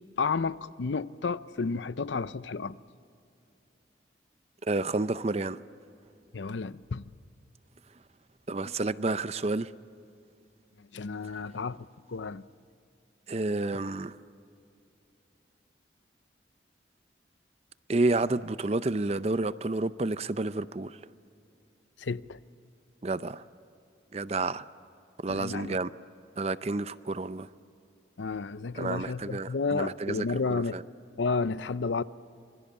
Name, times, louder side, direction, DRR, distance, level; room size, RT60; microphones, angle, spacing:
voice 1, 0.2-2.8 6.3-7.0 10.9-12.4 22.0-22.4 25.3-25.8 28.2-30.8 31.2-32.0, left 4 dB, 85° left, 0.6 m, -31 dB
voice 2, 4.6-5.6 8.5-9.7 13.3-14.1 17.9-21.0 23.0-23.4 24.1-24.7 25.2-25.9 26.4-27.5 28.8-30.8, right 2 dB, 35° right, 0.5 m, -30 dB
26.5 x 23.0 x 8.6 m
head